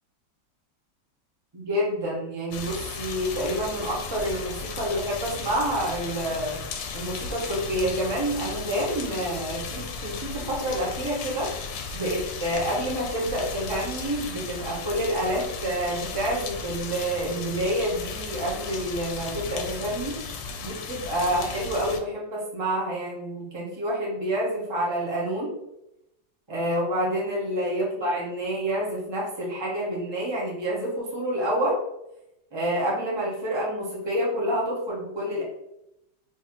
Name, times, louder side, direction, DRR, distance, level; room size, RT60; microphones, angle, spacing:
voice 1, 1.5-6.6 6.9-20.2 20.6-25.6 26.5-31.8 32.5-35.4, right 1 dB, 35° right, -5 dB, 0.4 m, -28 dB
sound 1, 2.5-22.0, left 5 dB, 80° left, 1.3 m, -35 dB
4.8 x 2.7 x 2.8 m, 0.84 s
omnidirectional pair, 2.0 m